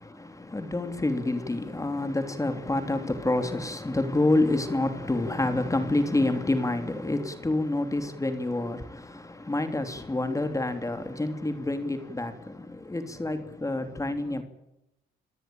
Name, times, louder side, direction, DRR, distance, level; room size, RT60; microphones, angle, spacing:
voice 1, 0.0-14.4, left 2 dB, 15° left, 2.9 m, -28 dB
26.5 x 18.0 x 8.9 m
cardioid pair, 90°, 20 cm